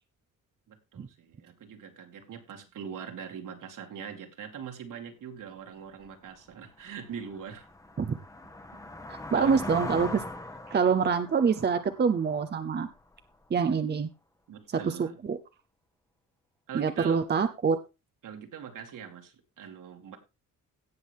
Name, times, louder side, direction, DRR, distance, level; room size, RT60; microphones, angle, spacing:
voice 1, 0.7-7.7 8.7-8.9 9.3-9.6 14.5-15.2 16.7-17.5 18.2-20.2, right 7 dB, 70° right, 4 dB, 2.4 m, -42 dB
sound 1, 6.0-6.1 6.6-13.2, left 2 dB, 10° left, 1.1 m, -41 dB
voice 2, 9.3-10.2 10.7-12.9 13.5-14.1 14.8-15.4 16.7-17.8, right 6 dB, 30° right, 8 dB, 0.7 m, -25 dB
17.5 x 6.1 x 3.6 m, 0.26 s
cardioid pair, 130°, 33 cm